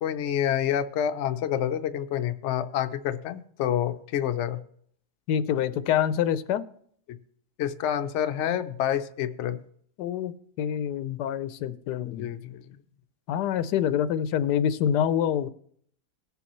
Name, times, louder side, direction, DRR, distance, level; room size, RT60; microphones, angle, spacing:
voice 1, 0.0-4.6 7.6-9.6 12.2-12.6, left 10 dB, 60° left, 8 dB, 0.7 m, -28 dB
voice 2, 5.3-6.6 10.0-12.3 13.3-15.5, left 9 dB, 85° left, 13 dB, 1.2 m, -26 dB
18.0 x 7.0 x 3.0 m, 0.63 s
omnidirectional pair, 1.7 m